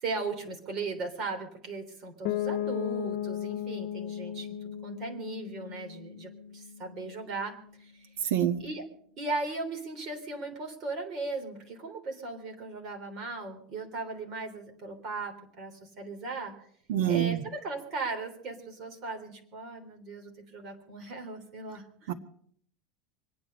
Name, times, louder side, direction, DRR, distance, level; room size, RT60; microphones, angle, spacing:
voice 1, 0.0-8.1 8.6-8.8 9.2-16.5 17.1-22.1, right 3 dB, 35° right, 3 dB, 3.5 m, -37 dB
Piano, 2.3-8.0, left 10 dB, 60° left, 1.0 m, -36 dB
voice 2, 8.2-8.6 16.9-17.4 22.1-22.2, right 11 dB, 80° right, 7 dB, 1.5 m, -26 dB
25.5 x 9.6 x 5.4 m, 0.62 s
supercardioid pair, 170°, 0 cm